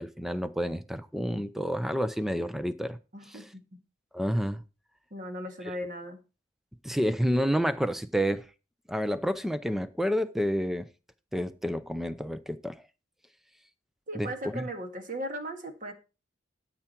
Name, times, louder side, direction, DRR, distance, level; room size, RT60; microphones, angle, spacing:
voice 1, 0.0-3.0 3.3-3.5 4.1-4.6 5.7-5.8 6.8-8.5 8.9-10.9 11.3-12.8 14.1-14.7, equal, ahead, 0.5 m, -29 dB
voice 2, 3.1-3.8 5.1-6.2 14.1-15.9, right 1 dB, 40° right, 1.8 m, -37 dB
12.5 x 5.9 x 4.5 m
head